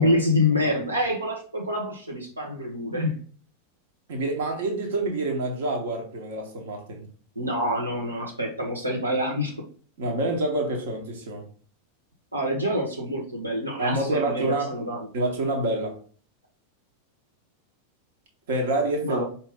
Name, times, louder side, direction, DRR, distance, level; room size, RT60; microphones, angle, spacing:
voice 1, 0.0-3.1 7.3-9.5 12.3-15.1 19.0-19.2, left 1 dB, 85° right, 1.0 m, -26 dB
voice 2, 4.1-7.1 10.0-11.4 13.8-14.7 15.1-16.0 18.5-19.2, right 2 dB, 55° right, 1.2 m, -27 dB
5.1 x 2.8 x 3.7 m
figure-of-eight pair, 90°, 0 cm